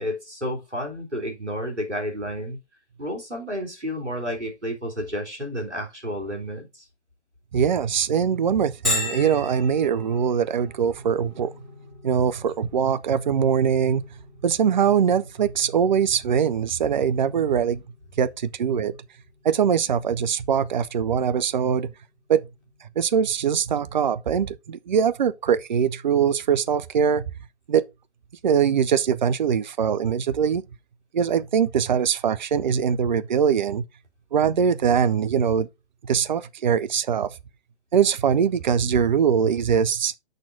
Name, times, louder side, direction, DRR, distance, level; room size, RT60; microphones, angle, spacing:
voice 1, 0.0-2.6 3.0-6.9, equal, 85° right, 3.1 m, -31 dB
voice 2, 7.5-11.5 12.0-14.0 14.4-17.8 18.2-18.9 19.4-21.9 22.3-22.5 23.0-27.2 27.7-27.8 28.4-30.6 31.1-33.8 34.3-35.7 36.0-37.3 37.9-40.1, right 7 dB, 45° right, 0.6 m, -22 dB
Bell, 8.8-24.3, left 2 dB, ahead, 2.2 m, -39 dB
6.5 x 6.0 x 3.9 m
figure-of-eight pair, 135°, 34 cm